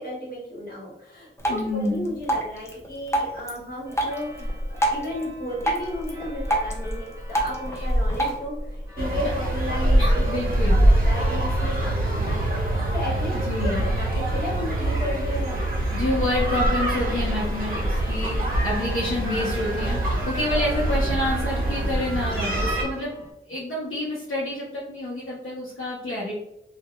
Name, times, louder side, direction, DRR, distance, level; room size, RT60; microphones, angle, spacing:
voice 1, 0.0-10.3 10.7-15.6 20.1-20.2, left 1 dB, 45° left, -5 dB, 1.2 m, -34 dB
Drip, 1.4-8.4, right 1 dB, 15° left, 0.5 m, -29 dB
voice 2, 1.5-2.1 7.7-7.9 10.0-10.8 13.5-13.8 15.9-23.2 23.5-26.3, left 1 dB, 75° left, -6 dB, 0.7 m, -28 dB
sound 1, 3.9-23.3, equal, 15° right, 0.8 m, -28 dB
sound 2, 9.0-22.8, right 1 dB, 45° right, 0.8 m, -26 dB
2.3 x 2.2 x 2.8 m, 0.82 s
wide cardioid pair, 90°, 21 cm